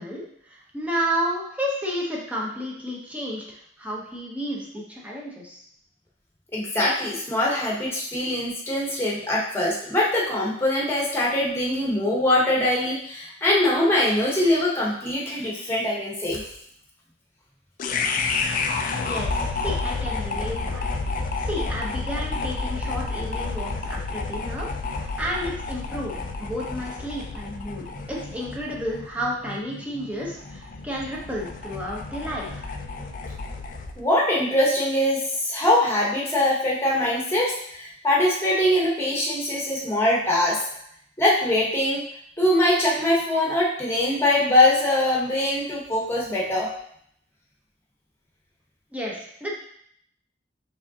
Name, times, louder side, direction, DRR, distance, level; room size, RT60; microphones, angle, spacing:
voice 1, 0.0-5.6 19.0-20.9 21.4-32.7 48.9-49.5, equal, 10° right, -4 dB, 0.9 m, -32 dB
voice 2, 6.5-16.4 34.0-40.6 41.2-42.0 42.4-46.7, left 1 dB, 15° left, -5 dB, 1.1 m, -22 dB
sound 1, 17.8-34.0, left 3 dB, 45° left, 0.4 m, -30 dB
5.0 x 3.5 x 2.8 m, 0.67 s
head